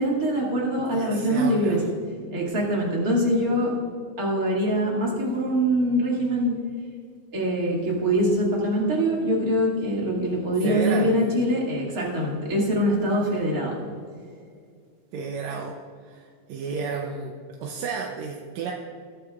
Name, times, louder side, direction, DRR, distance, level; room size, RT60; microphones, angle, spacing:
voice 1, 0.0-1.8 2.3-3.7 4.2-6.6 7.3-13.7, equal, 30° right, -3 dB, 2.5 m, -23 dB
voice 2, 0.9-1.9 10.6-11.2 15.1-15.8 16.0-18.7, right 5 dB, 70° right, 1 dB, 1.9 m, -32 dB
20.5 x 8.0 x 2.4 m, 2.2 s
omnidirectional pair, 3.6 m